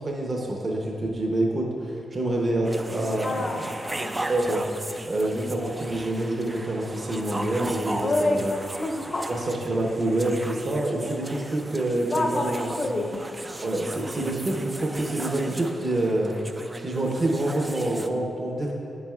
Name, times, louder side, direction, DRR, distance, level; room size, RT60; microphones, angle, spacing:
voice 1, 0.0-3.7 4.1-4.6 5.1-8.5 9.3-12.7 13.6-16.3 16.8-18.7, right 1 dB, 35° right, 0 dB, 0.7 m, -27 dB
sound 1, 2.6-18.1, right 1 dB, 15° right, 0.3 m, -37 dB
voice 2, 3.2-4.1 8.0-9.3 11.0-11.2 12.1-13.2, left 2 dB, 30° left, 1 dB, 0.7 m, -28 dB
8.5 x 7.3 x 2.4 m, 2.6 s
wide cardioid pair, 135°, 0 cm